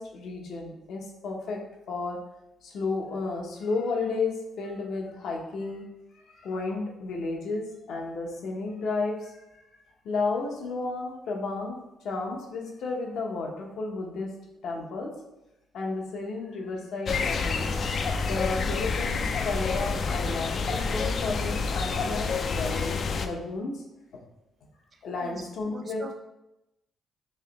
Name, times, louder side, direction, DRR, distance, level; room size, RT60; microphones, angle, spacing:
voice 1, 0.0-1.6 1.9-2.2 2.6-5.9 6.1-9.6 10.0-11.8 12.0-14.3 14.6-15.1 15.7-17.7 18.2-23.8 25.0-26.1, left 3 dB, 70° left, 0 dB, 0.8 m, -32 dB
sound 1, 17.1-23.3, left 4 dB, 50° left, 0.3 m, -28 dB
voice 2, 24.9-26.1, right 4 dB, 40° right, 8 dB, 0.4 m, -44 dB
3.2 x 2.8 x 3.9 m, 0.92 s
cardioid pair, 90°, 0 cm